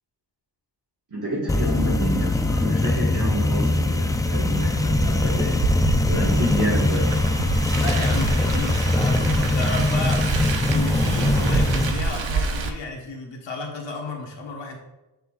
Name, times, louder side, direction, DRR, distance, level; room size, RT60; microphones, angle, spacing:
voice 1, 1.1-7.1, equal, 45° right, -6 dB, 2.0 m, -29 dB
sound 1, 1.5-11.9, left 2 dB, 10° left, 0.3 m, -22 dB
Car, 4.6-12.7, right 4 dB, 85° right, 0.9 m, -27 dB
voice 2, 7.7-14.8, left 3 dB, 75° left, 0 dB, 1.6 m, -33 dB
7.9 x 6.6 x 2.6 m, 1.0 s
wide cardioid pair, 140°, 44 cm